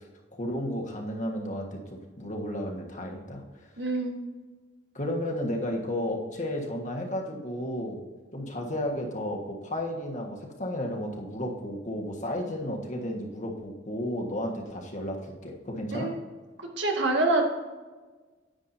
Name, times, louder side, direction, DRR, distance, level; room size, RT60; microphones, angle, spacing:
voice 1, 0.3-3.4 4.9-8.0 8.3-15.2 15.4-16.1, left 1 dB, 40° left, 1 dB, 1.5 m, -33 dB
voice 2, 3.8-4.2 15.9-16.1 16.8-17.4, right 2 dB, 75° right, 1 dB, 1.8 m, -25 dB
10.0 x 9.5 x 2.8 m, 1.3 s
head